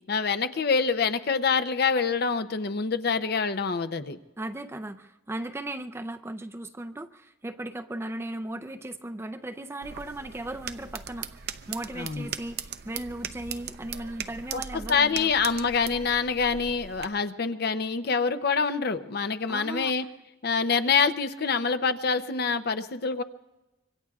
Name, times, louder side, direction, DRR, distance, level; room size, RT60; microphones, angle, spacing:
voice 1, 0.1-4.2 12.0-12.3 14.5-20.0 20.4-23.2, left 5 dB, 55° left, 11 dB, 0.6 m, -26 dB
voice 2, 4.4-15.3 19.5-19.9, right 1 dB, 15° right, 8 dB, 0.4 m, -37 dB
sound 1, 9.8-17.1, right 8 dB, 60° right, 0.6 m, -39 dB
25.5 x 24.0 x 2.4 m, 1.0 s
head